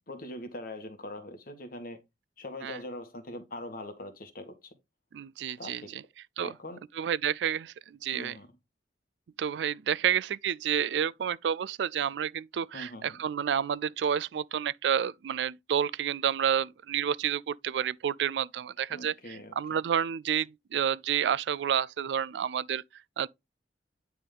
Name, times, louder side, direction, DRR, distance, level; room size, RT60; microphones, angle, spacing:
voice 1, 0.1-2.0 2.4-4.8 5.6-5.9 6.4-6.8 8.1-8.6 12.7-13.2 18.9-19.8, left 1 dB, 55° left, 1.5 m, -42 dB
voice 2, 5.1-6.0 6.4-6.5 7.0-8.3 9.4-23.3, right 8 dB, 75° right, 0.3 m, -30 dB
9.6 x 3.5 x 3.7 m
head